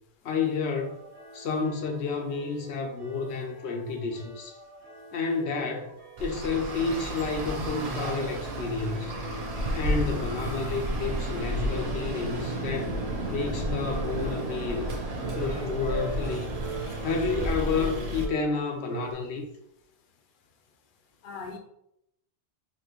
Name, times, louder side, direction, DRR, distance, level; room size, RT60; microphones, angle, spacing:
voice 1, 0.2-1.0 1.3-4.6 5.1-5.9 6.2-9.1 9.7-12.9 13.3-14.9 15.3-16.5 17.0-19.4, left 4 dB, 85° left, 3 dB, 0.9 m, -30 dB
sound 1, 0.8-19.1, right 3 dB, 85° right, 1.2 m, -41 dB
Traffic noise roadway noise, 6.2-18.3, right 1 dB, 40° right, 0.7 m, -32 dB
voice 2, 16.8-17.4 21.2-21.6, left 4 dB, 60° left, 3 dB, 0.7 m, -44 dB
4.1 x 2.8 x 3.0 m, 0.79 s
omnidirectional pair, 1.1 m